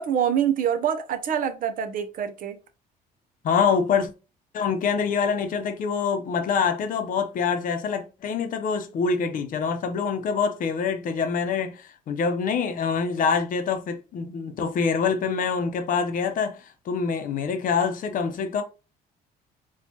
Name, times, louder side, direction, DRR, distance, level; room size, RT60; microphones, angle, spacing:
voice 1, 0.0-2.6, right 8 dB, 55° right, 0.7 m, -25 dB
voice 2, 3.4-4.1 4.5-18.6, left 6 dB, 55° left, 0.7 m, -25 dB
4.2 x 2.4 x 2.9 m
cardioid pair, 110°, 17 cm